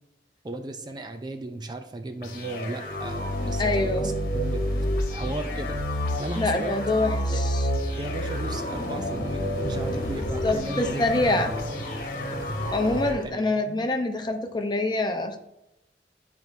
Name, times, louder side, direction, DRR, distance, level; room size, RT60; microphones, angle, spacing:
voice 1, 0.4-4.6 5.1-5.8 6.2-6.8 7.1-7.4 8.0-11.4 13.2-13.9, right 2 dB, 25° right, 6 dB, 0.5 m, -36 dB
sound 1, 2.2-13.2, equal, 55° left, 1.4 m, -29 dB
voice 2, 3.6-4.1 6.3-7.7 10.4-11.5 12.7-15.4, left 2 dB, 25° left, 5 dB, 0.8 m, -25 dB
12.0 x 4.6 x 2.7 m, 0.87 s
head